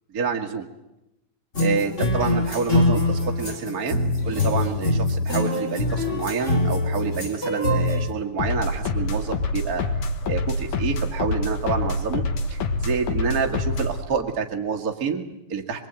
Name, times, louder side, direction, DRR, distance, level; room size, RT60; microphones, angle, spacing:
voice 1, 0.1-0.7 1.6-9.8 10.3-15.9, right 5 dB, 35° right, 2 dB, 2.0 m, -28 dB
sound 1, 1.5-8.1, left 2 dB, 20° left, 3.8 m, -23 dB
sound 2, 8.4-14.0, left 2 dB, 75° left, 3.1 m, -26 dB
24.5 x 23.5 x 9.0 m, 0.92 s
omnidirectional pair, 3.4 m